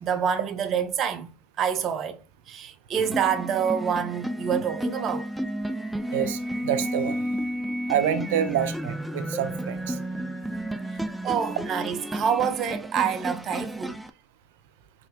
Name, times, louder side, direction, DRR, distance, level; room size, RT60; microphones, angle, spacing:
voice 1, 0.0-5.3 11.2-14.0, right 8 dB, 40° right, 0.9 m, -27 dB
sound 1, 2.9-14.1, equal, 5° right, 0.5 m, -32 dB
voice 2, 6.1-7.2 7.9-10.0, right 9 dB, 80° right, 0.7 m, -27 dB
5.3 x 3.4 x 2.9 m
supercardioid pair, 105°, 0 cm